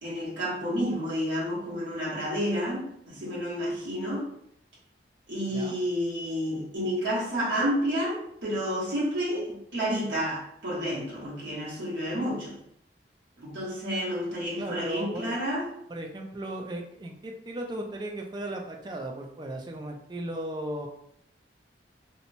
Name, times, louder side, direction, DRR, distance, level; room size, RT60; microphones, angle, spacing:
voice 1, 0.0-4.3 5.3-12.5 13.4-15.7, equal, 80° right, -7 dB, 1.1 m, -30 dB
voice 2, 14.6-15.4 15.9-20.9, right 1 dB, 25° right, 2 dB, 0.3 m, -36 dB
2.9 x 2.0 x 2.5 m, 0.71 s
head